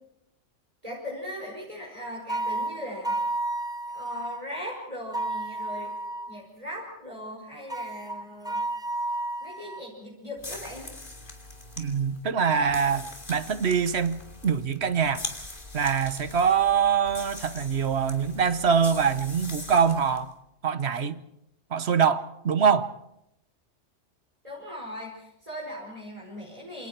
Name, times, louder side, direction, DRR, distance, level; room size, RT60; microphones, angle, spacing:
voice 1, 0.8-3.1 3.9-5.9 6.3-8.6 9.4-10.9 24.4-26.9, equal, 30° right, 5.5 m, -39 dB
sound 1, 2.3-4.4 5.1-6.4 7.7-9.9, right 2 dB, 5° right, 0.6 m, -31 dB
sound 2, 10.4-20.3, left 2 dB, 40° left, 3.1 m, -42 dB
voice 2, 11.8-15.2 15.7-20.3 20.6-21.2 21.7-22.9, right 6 dB, 60° right, 1.3 m, -24 dB
28.0 x 28.0 x 4.5 m
omnidirectional pair, 1.3 m